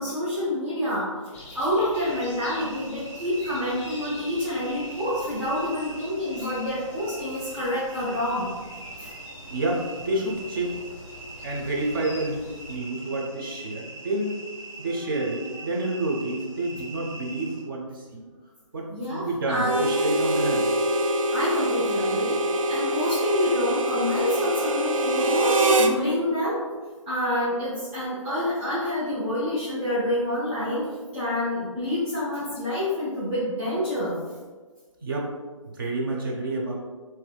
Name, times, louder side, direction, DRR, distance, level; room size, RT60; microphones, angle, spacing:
voice 1, 0.0-8.5 9.0-9.1 18.9-19.8 21.3-22.4 22.7-26.6 27.1-34.2, left 1 dB, 10° right, -13 dB, 0.9 m, -28 dB
sound 1, 1.3-12.8, left 1 dB, 25° left, 0.6 m, -46 dB
sound 2, 1.9-17.6, right 2 dB, 5° left, 1.2 m, -42 dB
voice 2, 9.5-10.8 11.4-14.4 14.8-18.2 18.7-20.7 35.0-35.3 35.8-36.7, right 2 dB, 40° right, -1 dB, 0.7 m, -29 dB
Harmonica, 19.6-26.0, right 1 dB, 75° right, 0.4 m, -24 dB
4.1 x 2.7 x 2.3 m, 1.4 s
figure-of-eight pair, 145°, 17 cm